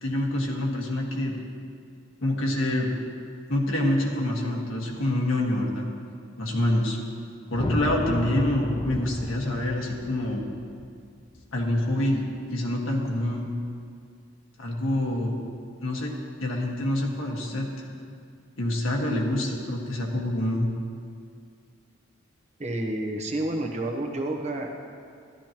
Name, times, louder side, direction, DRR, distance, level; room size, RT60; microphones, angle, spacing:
voice 1, 0.0-1.3 2.2-2.9 3.5-5.9 6.4-7.0 7.5-10.4 11.5-12.2 12.5-13.5 14.6-15.4 15.8-16.1 16.4-17.7 18.6-20.7, left 1 dB, 80° left, -1 dB, 1.6 m, -26 dB
sound 1, 7.5-11.9, left 1 dB, 25° left, 0.6 m, -34 dB
voice 2, 22.6-24.7, right 1 dB, 35° right, 1 dB, 1.0 m, -29 dB
13.5 x 12.0 x 3.0 m, 2.2 s
head